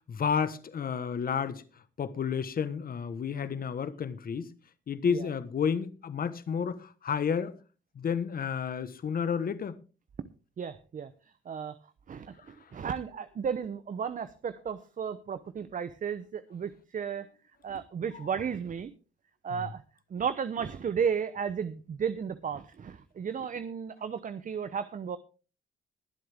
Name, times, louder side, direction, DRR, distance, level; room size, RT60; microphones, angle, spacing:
voice 1, 0.1-1.6 2.0-4.5 4.9-7.6 7.9-9.8 19.5-19.6, left 7 dB, 45° left, 1.3 m, -31 dB
voice 2, 10.6-11.1 11.5-11.7 12.1-17.3 17.6-18.9 19.4-19.8 20.1-25.2, right 7 dB, 40° right, 0.8 m, -34 dB
21.5 x 7.7 x 3.5 m
cardioid pair, 90°, 20 cm